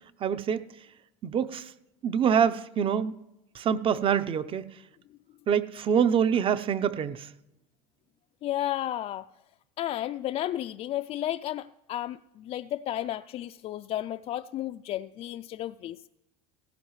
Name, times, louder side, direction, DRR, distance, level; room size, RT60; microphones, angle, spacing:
voice 1, 0.2-0.7 1.2-1.7 2.0-3.1 3.5-4.6 5.5-7.3, right 7 dB, 35° right, 13 dB, 0.7 m, -25 dB
voice 2, 8.4-9.3 9.8-16.1, left 13 dB, 40° left, 9 dB, 0.4 m, -33 dB
17.5 x 16.5 x 3.2 m, 0.94 s
supercardioid pair, 100°, 16 cm